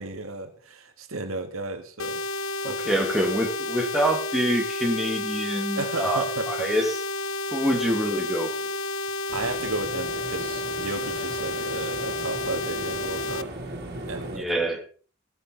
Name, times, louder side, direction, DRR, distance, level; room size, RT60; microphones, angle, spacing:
voice 1, 0.0-2.2 2.6-2.8 5.8-6.5 9.3-13.5 14.1-14.5, right 2 dB, 90° right, 6 dB, 2.1 m, -34 dB
sound 1, 2.0-13.4, left 2 dB, 75° left, 0.8 m, -31 dB
voice 2, 2.6-7.0 7.5-8.8 14.3-14.8, right 1 dB, ahead, 1 dB, 2.1 m, -26 dB
sound 2, 9.3-14.4, right 1 dB, 50° right, 3.2 m, -37 dB
17.5 x 8.7 x 4.0 m, 0.39 s
head